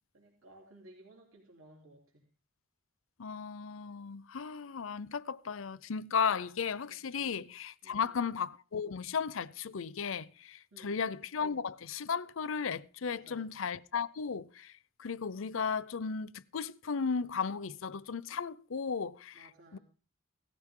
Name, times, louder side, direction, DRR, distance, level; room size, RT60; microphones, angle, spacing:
voice 1, 0.1-2.2 6.8-7.3 7.8-8.2 10.7-11.0 13.1-13.6 19.3-19.8, right 1 dB, 85° right, 3.4 m, -58 dB
voice 2, 3.2-19.8, left 6 dB, 70° left, 0.6 m, -35 dB
17.5 x 14.5 x 3.7 m
head